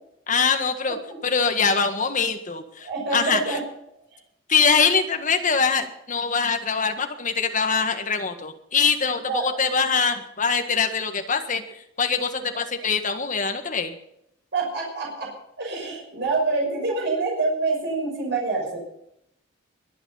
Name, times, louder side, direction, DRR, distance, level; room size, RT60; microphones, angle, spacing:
voice 1, 0.3-1.0 1.2-3.6 4.5-14.0, left 5 dB, 40° left, 6 dB, 1.7 m, -23 dB
voice 2, 2.8-3.6 9.3-9.5 14.5-15.3 15.6-18.8, right 3 dB, 60° right, -1 dB, 6.2 m, -26 dB
22.0 x 9.1 x 5.7 m, 0.77 s
head